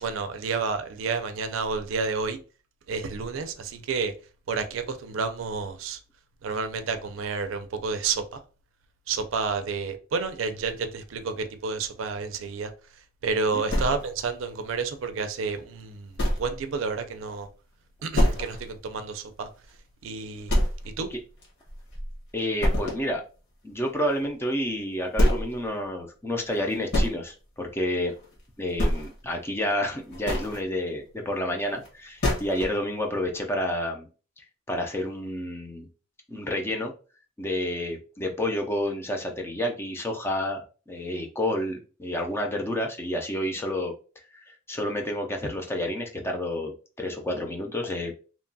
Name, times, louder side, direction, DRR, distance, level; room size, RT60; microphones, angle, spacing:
voice 1, 0.0-2.4 2.9-4.1 4.5-6.0 6.4-8.4 9.1-17.5 18.0-19.5 20.0-20.6 20.8-21.1, right 4 dB, 75° right, 0.4 m, -30 dB
sound 1, 13.7-14.4 14.9-15.0 15.4-15.5 16.2-16.6 16.9-17.0 17.4-17.5 18.1-18.7 19.1-19.2 19.6-19.7 20.5-21.1 21.4-22.2 22.6-23.1 24.5-24.6 25.1-25.6 26.5-27.1 28.1-28.4 28.7-29.3 30.0-30.6 31.8-31.9 32.2-32.8, equal, 55° left, 1.2 m, -25 dB
voice 2, 22.3-23.2 23.6-28.1 28.6-34.1 34.7-35.9 36.3-36.9 37.4-43.9 44.3-48.1, left 1 dB, 10° left, 0.4 m, -29 dB
2.9 x 2.2 x 2.6 m
head